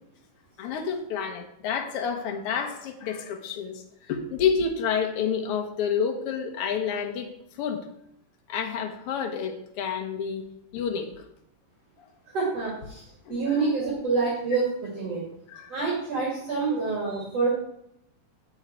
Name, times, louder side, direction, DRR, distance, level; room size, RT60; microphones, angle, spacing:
voice 1, 0.6-7.3 7.6-7.8 8.5-10.4 10.7-11.3 12.0-12.1 13.2-13.4 15.5-15.7, left 6 dB, 60° left, 4 dB, 1.6 m, -29 dB
voice 2, 12.3-13.0 13.3-14.6 15.0-15.2 15.7-17.5, right 4 dB, 50° right, -5 dB, 3.5 m, -27 dB
9.1 x 8.1 x 4.6 m, 0.77 s
omnidirectional pair, 3.9 m